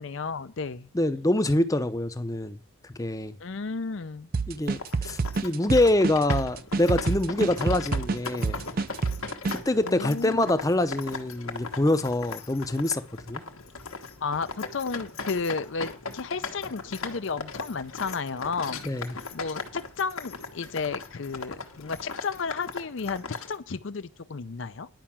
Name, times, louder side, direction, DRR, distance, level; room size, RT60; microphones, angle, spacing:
voice 1, 0.0-0.9 3.4-4.3 9.8-10.5 14.2-18.9 19.1-24.9, left 4 dB, 60° left, 0.5 m, -33 dB
voice 2, 0.9-2.6 2.9-3.3 4.5-8.6 9.7-13.4 18.8-19.1, left 1 dB, 15° left, 0.6 m, -25 dB
sound 1, 4.3-9.6, right 4 dB, 45° right, 0.5 m, -28 dB
sound 2, 4.6-23.6, left 4 dB, 80° left, 1.4 m, -38 dB
10.5 x 5.7 x 7.3 m
head